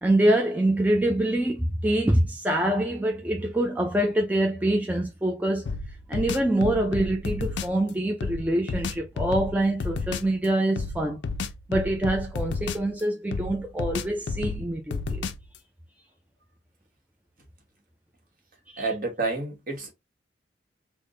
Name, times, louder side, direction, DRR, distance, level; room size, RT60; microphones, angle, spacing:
voice 1, 0.0-5.7 6.1-11.2 11.7-15.3 18.7-18.9, right 1 dB, 10° right, 0.4 m, -25 dB
sound 1, 5.7-7.8 8.2-10.3 10.8-13.0 13.3-15.6, left 3 dB, 90° left, 0.4 m, -32 dB
voice 2, 18.8-19.9, right 3 dB, 50° right, 1.3 m, -29 dB
3.5 x 2.1 x 3.6 m
head